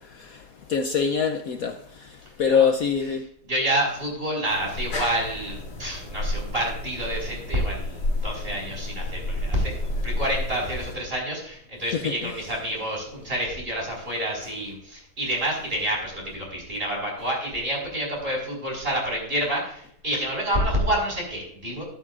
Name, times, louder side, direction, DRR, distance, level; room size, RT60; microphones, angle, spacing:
voice 1, 0.1-3.2 11.9-12.1, left 6 dB, 80° left, 0.7 m, -25 dB
voice 2, 3.4-21.8, equal, 25° right, 5.5 m, -28 dB
sound 1, 4.5-11.0, left 1 dB, 65° left, 4.3 m, -31 dB
13.0 x 12.5 x 2.5 m
omnidirectional pair, 2.4 m